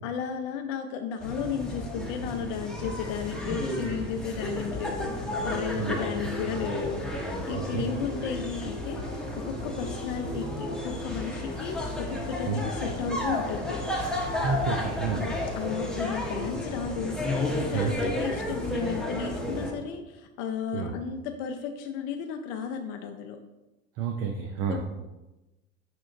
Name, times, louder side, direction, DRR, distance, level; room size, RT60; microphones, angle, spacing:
voice 1, 0.0-5.1 5.4-13.8 15.1-15.3 15.6-23.4 24.7-24.8, left 7 dB, 60° left, 5 dB, 0.4 m, -34 dB
sound 1, 1.2-19.7, left 1 dB, ahead, 0.9 m, -33 dB
sound 2, 1.3-19.8, left 1 dB, 85° right, 1.4 m, -41 dB
voice 2, 7.5-7.8 12.5-12.6 14.4-15.3 17.7-17.9 20.7-20.9 24.0-24.8, right 6 dB, 50° right, 3 dB, 0.5 m, -30 dB
5.8 x 2.8 x 2.5 m, 1.0 s
hypercardioid pair, 75°, 31 cm